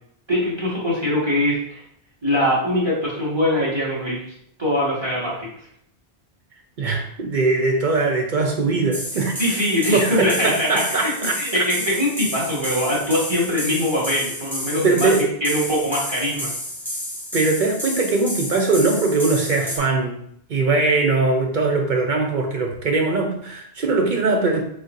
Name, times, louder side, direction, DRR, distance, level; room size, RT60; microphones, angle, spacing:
voice 1, 0.3-1.8 2.2-4.3 4.6-5.5 9.4-16.5, left 1 dB, 25° right, -7 dB, 1.7 m, -22 dB
voice 2, 6.8-9.3 9.9-11.4 14.8-15.3 17.3-20.2 20.5-24.6, right 3 dB, 55° right, 2 dB, 0.7 m, -21 dB
sound 1, 8.9-19.8, left 1 dB, ahead, 1.0 m, -31 dB
4.6 x 4.2 x 2.6 m, 0.69 s
omnidirectional pair, 1.0 m